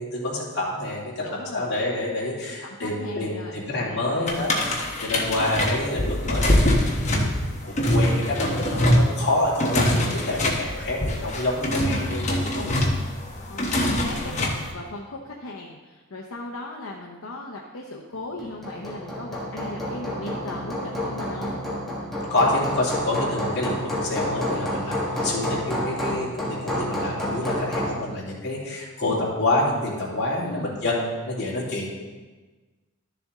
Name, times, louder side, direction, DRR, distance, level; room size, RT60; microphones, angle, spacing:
voice 1, 0.0-7.4 7.6-12.8 22.3-31.9, left 2 dB, 50° left, -5 dB, 2.5 m, -27 dB
voice 2, 1.2-1.7 2.6-4.0 13.3-21.6 30.4-30.8, left 2 dB, 70° left, -1 dB, 0.8 m, -37 dB
sound 1, 4.3-14.7, left 1 dB, 30° left, 1.1 m, -23 dB
Hammer, 18.4-28.0, equal, ahead, 1.4 m, -29 dB
12.5 x 6.8 x 3.7 m, 1.3 s
head